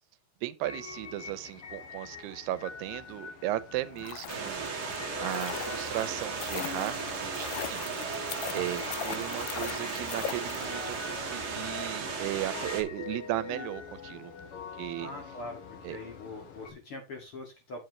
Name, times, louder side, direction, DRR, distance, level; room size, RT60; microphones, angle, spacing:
voice 1, 0.4-7.9 8.5-14.3 14.8-15.1 15.8-16.0, right 15 dB, 90° right, 2.7 m, -36 dB
sound 1, 0.6-16.7, left 6 dB, 65° left, 1.3 m, -44 dB
sound 2, 3.8-11.0 11.3-11.4, left 12 dB, 85° left, 1.9 m, -41 dB
sound 3, 4.3-12.8, right 5 dB, 45° right, 1.3 m, -36 dB
voice 2, 8.6-8.9 15.0-17.8, left 2 dB, 40° left, 2.3 m, -43 dB
9.4 x 7.8 x 3.1 m
omnidirectional pair, 4.6 m